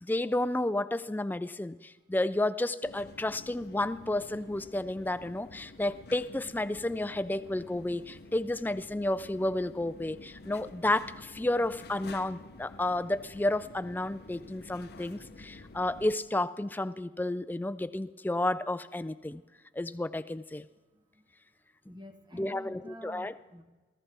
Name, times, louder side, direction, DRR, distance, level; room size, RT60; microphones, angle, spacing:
voice 1, 0.0-19.4 19.8-20.6 22.3-23.3, left 1 dB, 10° left, 14 dB, 0.3 m, -31 dB
sound 1, 2.8-16.2, left 3 dB, 55° left, 0.6 m, -50 dB
voice 2, 21.9-23.6, equal, 25° right, 5 dB, 1.2 m, -48 dB
21.5 x 14.5 x 3.4 m, 1.3 s
head